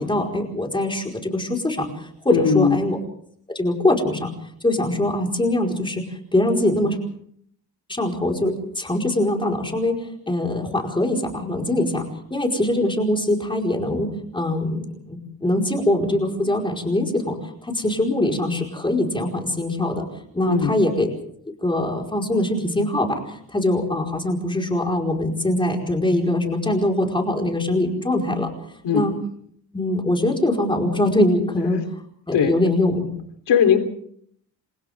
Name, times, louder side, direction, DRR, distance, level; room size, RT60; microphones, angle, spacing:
voice 1, 0.0-3.0 3.5-4.3 4.6-7.0 7.9-12.0 12.3-17.4 17.6-20.1 20.3-21.1 21.6-28.5 28.9-29.1 29.7-31.8 32.3-33.0, left 1 dB, 10° left, 1 dB, 4.9 m, -22 dB
voice 2, 2.3-2.8 20.5-20.8 28.8-29.0 32.3-32.5 33.5-33.8, left 7 dB, 85° left, 6 dB, 3.8 m, -18 dB
28.5 x 27.0 x 3.7 m, 0.64 s
wide cardioid pair, 175°, 41 cm